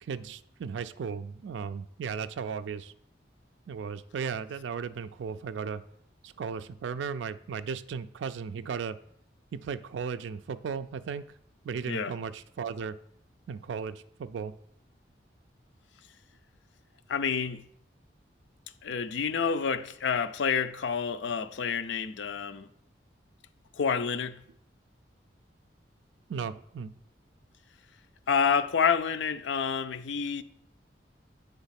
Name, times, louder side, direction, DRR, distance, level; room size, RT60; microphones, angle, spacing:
voice 1, 0.0-2.9 3.7-5.8 6.2-9.0 9.6-11.2 11.6-12.9 13.5-14.5 26.3-26.9, right 6 dB, 80° right, 0.3 m, -36 dB
voice 2, 17.1-17.6 18.8-22.7 23.7-24.4 28.3-30.4, left 6 dB, 80° left, 0.4 m, -28 dB
8.1 x 3.5 x 5.7 m
head